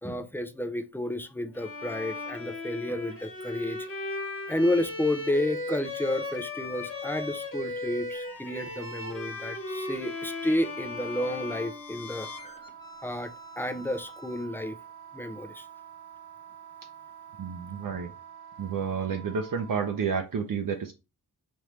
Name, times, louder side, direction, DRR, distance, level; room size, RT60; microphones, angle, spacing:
voice 1, 0.0-3.9 4.5-12.5 13.0-14.7 15.1-15.6, left 1 dB, 5° left, 0.4 m, -31 dB
Bowed string instrument, 1.5-12.5, left 3 dB, 35° left, 1.2 m, -37 dB
sound 1, 8.1-14.4, left 6 dB, 60° left, 0.7 m, -48 dB
Wind instrument woodwind instrument, 12.1-20.0, right 8 dB, 85° right, 1.0 m, -48 dB
voice 2, 17.4-18.1 18.6-20.9, right 6 dB, 60° right, 0.6 m, -30 dB
5.1 x 3.2 x 3.0 m
wide cardioid pair, 170°, 38 cm